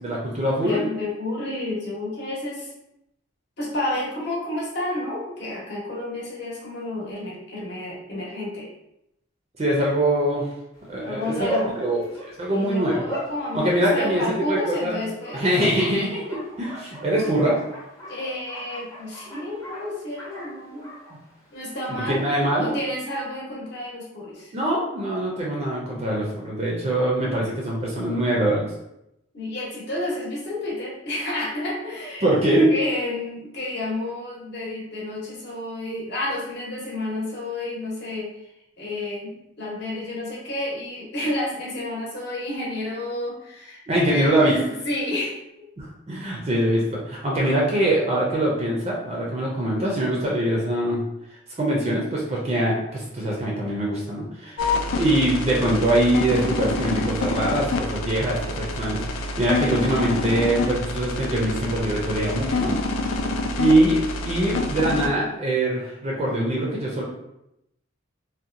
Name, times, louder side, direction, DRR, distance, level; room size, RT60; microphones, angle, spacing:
voice 1, 0.0-0.8 9.6-10.5 10.9-11.5 11.8-12.0 12.4-13.0 13.5-15.0 15.3-17.6 22.1-22.7 24.5-28.7 32.2-32.7 43.9-44.5 45.8-51.0 51.6-54.6 54.9-62.8 63.6-67.0, right 1 dB, 30° right, -3 dB, 0.4 m, -23 dB
voice 2, 0.6-2.7 3.6-8.7 11.0-11.7 12.5-15.5 18.1-20.9 21.5-22.2 22.6-24.5 29.3-32.3 32.7-38.3 38.8-43.8 44.1-45.4 54.8-55.1 62.9-63.3, left 1 dB, 55° left, -5 dB, 0.8 m, -30 dB
Bark, 10.7-22.0, equal, 15° left, 0.6 m, -38 dB
sound 1, 54.6-65.1, left 2 dB, 85° left, 0.3 m, -27 dB
2.8 x 2.1 x 2.5 m, 0.84 s
head